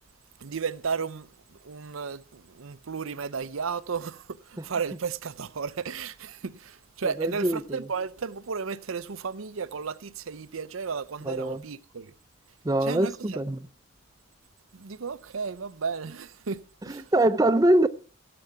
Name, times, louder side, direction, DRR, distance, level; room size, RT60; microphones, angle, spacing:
voice 1, 0.4-12.1 12.8-13.4 14.7-17.1, right 5 dB, 85° right, 0.6 m, -34 dB
voice 2, 7.2-7.8 11.3-11.6 12.6-13.6 16.8-17.9, right 1 dB, 15° right, 0.6 m, -23 dB
15.5 x 7.8 x 5.8 m
head